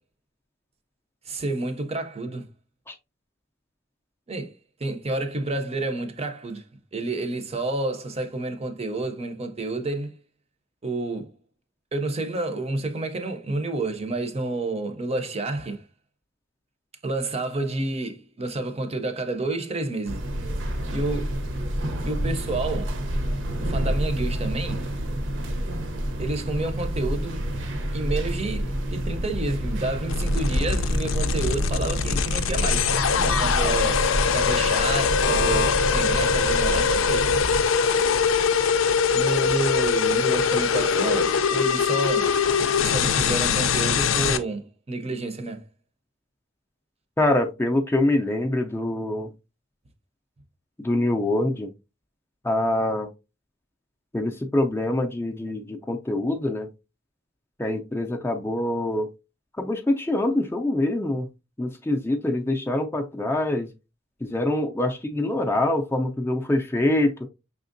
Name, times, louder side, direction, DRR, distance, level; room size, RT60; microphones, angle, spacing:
voice 1, 1.3-2.5 4.3-4.5 4.8-6.7 6.9-10.2 10.8-11.3 11.9-15.8 17.0-20.3 20.9-21.4 22.0-23.0 23.6-24.8 26.2-27.4 27.9-32.9 33.4-37.3 39.1-42.3 42.8-45.6, right 2 dB, 30° right, 0.6 m, -29 dB
sound 1, 20.0-37.6, equal, 65° right, 0.8 m, -28 dB
sound 2, 30.1-44.4, left 6 dB, 90° left, 0.5 m, -22 dB
voice 2, 47.2-49.3 50.8-51.7 52.4-53.1 54.1-56.7 57.6-59.1 59.6-61.3 61.6-63.7 64.2-67.3, left 1 dB, 10° left, 0.4 m, -25 dB
5.7 x 3.6 x 2.5 m
head